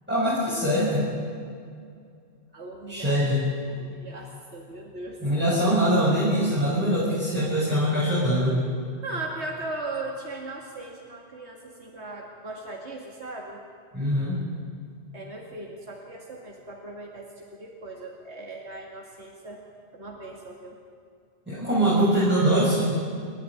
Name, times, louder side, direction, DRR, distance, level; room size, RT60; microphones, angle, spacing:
voice 1, 0.1-1.1 2.9-3.4 5.2-8.6 13.9-14.4 21.5-22.9, equal, 10° right, -9 dB, 6.9 m, -23 dB
voice 2, 2.5-3.2 3.7-5.2 9.0-13.6 15.1-19.6 19.9-20.8, right 2 dB, 80° right, -1 dB, 2.6 m, -38 dB
29.5 x 13.0 x 9.9 m, 2.3 s
omnidirectional pair, 1.1 m